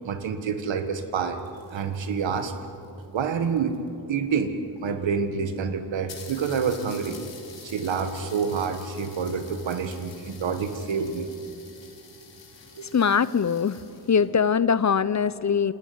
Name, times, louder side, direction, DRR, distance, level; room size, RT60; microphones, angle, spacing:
voice 1, 0.0-1.4 1.7-2.5 3.1-3.8 4.1-4.6 4.8-7.2 7.6-11.3 12.8-12.9, right 6 dB, 85° right, 8 dB, 1.7 m, -27 dB
sound 1, 1.1-3.9 4.8-4.9 5.1-5.2 5.5-5.6 6.1-14.3, left 5 dB, 75° left, 3.4 m, -48 dB
voice 2, 12.9-13.8 14.1-15.7, left 6 dB, 40° left, 17 dB, 0.8 m, -22 dB
27.5 x 12.5 x 9.5 m, 2.7 s
cardioid pair, 55°, 44 cm